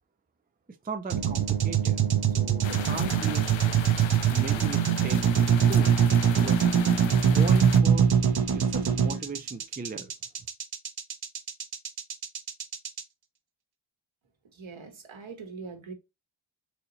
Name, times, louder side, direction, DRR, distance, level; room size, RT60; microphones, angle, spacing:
voice 1, 0.8-2.0 2.3-3.6 4.2-5.9 6.4-6.6 7.2-8.1 8.5-10.1, right 4 dB, 20° right, 0.4 m, -37 dB
sound 1, 1.1-13.0, right 8 dB, 50° right, 0.7 m, -23 dB
sound 2, 2.6-7.8, left 10 dB, 70° left, 0.5 m, -38 dB
voice 2, 14.5-15.9, right 4 dB, 70° right, 1.3 m, -42 dB
4.2 x 2.9 x 3.9 m
wide cardioid pair, 105°, 49 cm